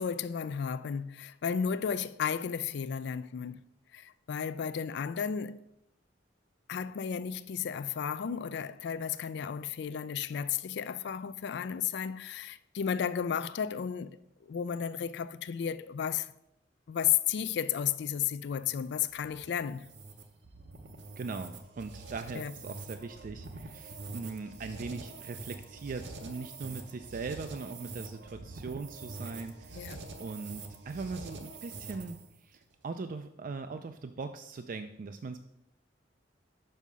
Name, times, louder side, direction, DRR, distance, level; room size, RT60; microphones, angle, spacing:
voice 1, 0.0-3.6 3.9-5.6 6.7-14.2 14.5-16.3 16.9-19.9 22.3-22.5 29.7-30.1, left 8 dB, 65° left, 0.3 m, -33 dB
sound 1, 18.5-32.4, right 3 dB, 75° right, 0.9 m, -45 dB
voice 2, 21.2-29.9 30.2-35.4, right 4 dB, 50° right, 0.4 m, -40 dB
5.5 x 5.5 x 6.1 m
head